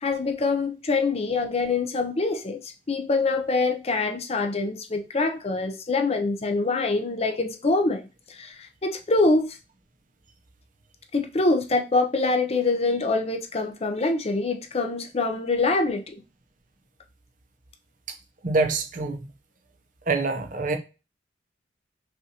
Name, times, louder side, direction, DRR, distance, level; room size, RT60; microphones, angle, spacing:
voice 1, 0.0-8.0 8.3-9.6 11.1-16.1, left 3 dB, 30° left, 0.5 m, -25 dB
voice 2, 18.4-19.3 20.1-20.8, right 3 dB, 45° right, 0.6 m, -25 dB
5.6 x 2.5 x 2.8 m
head